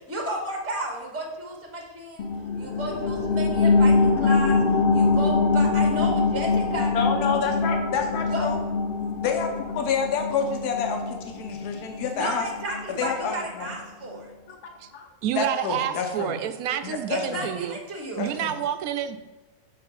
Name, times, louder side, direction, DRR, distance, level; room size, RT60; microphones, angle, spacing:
voice 1, 0.0-2.3 2.5-4.6 4.9-6.9 8.2-8.5 12.1-14.3 17.1-18.3, right 1 dB, 10° right, 1 dB, 1.0 m, -33 dB
sound 1, 2.2-13.3 13.7-13.8, left 4 dB, 55° left, 0.6 m, -24 dB
voice 2, 6.9-8.6 9.2-12.5 13.0-13.7 14.5-15.1 15.4-16.3 16.8-17.5 18.2-18.5, left 6 dB, 85° left, 4 dB, 1.4 m, -28 dB
voice 3, 15.2-17.8 18.2-19.2, right 10 dB, 75° right, 10 dB, 1.0 m, -28 dB
6.9 x 3.8 x 5.5 m, 1.2 s
omnidirectional pair, 1.6 m